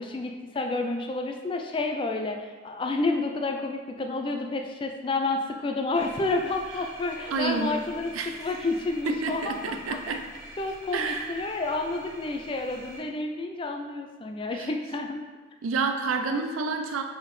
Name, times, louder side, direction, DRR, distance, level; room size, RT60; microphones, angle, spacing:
voice 1, 0.0-8.1 8.4-10.2 10.6-15.2, left 2 dB, 25° left, 3 dB, 0.3 m, -30 dB
sound 1, 5.9-13.0, equal, 35° right, 1.5 m, -46 dB
voice 2, 7.3-7.9 8.1-8.5 9.1-10.2 10.9-11.3 14.5-14.7 15.6-17.0, right 4 dB, 85° right, 6 dB, 0.4 m, -29 dB
4.3 x 3.6 x 3.1 m, 1.4 s
head